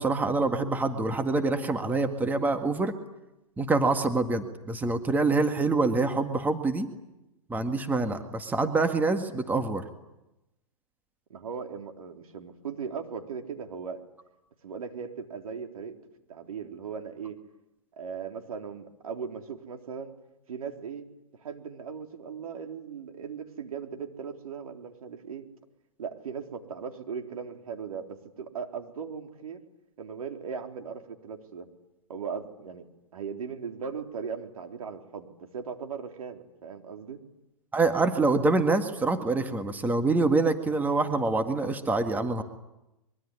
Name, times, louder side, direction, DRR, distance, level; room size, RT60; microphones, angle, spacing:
voice 1, 0.0-3.0 3.6-6.9 7.5-9.8 37.7-42.4, right 3 dB, 10° right, 7 dB, 1.9 m, -26 dB
voice 2, 11.3-14.0 14.6-16.0 16.3-17.4 18.0-20.1 20.5-21.1 21.4-25.5 26.0-29.6 30.0-31.7 32.1-32.9 33.1-37.2, right 6 dB, 75° right, 4 dB, 3.8 m, -38 dB
24.0 x 23.5 x 10.0 m, 0.94 s
hypercardioid pair, 130°, 18 cm